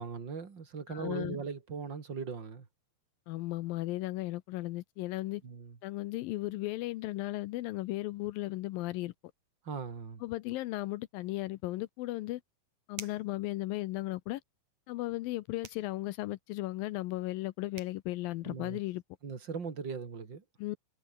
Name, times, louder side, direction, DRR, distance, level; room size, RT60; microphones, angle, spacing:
voice 1, 0.0-2.7 5.4-5.8 9.6-10.2 18.4-18.8 19.2-20.4, right 5 dB, 35° right, 3.0 m, -39 dB
voice 2, 0.9-1.4 3.3-5.4 5.8-9.1 10.2-12.4 12.9-14.4 14.9-19.0 20.6-20.8, left 17 dB, 80° left, 2.5 m, -36 dB
sound 1, 13.0-13.4 15.6-15.9 17.4-17.5 17.8-18.0, right 8 dB, 50° right, 3.1 m, -46 dB
omnidirectional pair, 4.2 m